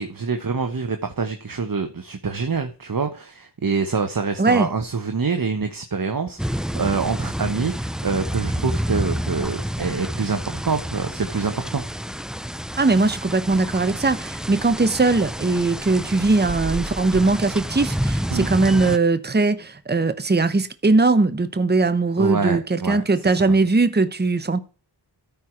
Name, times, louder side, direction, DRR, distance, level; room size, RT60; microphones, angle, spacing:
voice 1, 0.0-11.8 18.3-18.5 22.2-23.3, right 4 dB, 50° right, 1.1 m, -26 dB
voice 2, 4.4-4.7 12.8-24.6, right 3 dB, 25° right, 0.9 m, -20 dB
sound 1, 6.4-19.0, equal, ahead, 0.4 m, -29 dB
14.0 x 4.7 x 4.5 m
wide cardioid pair, 60°, 43 cm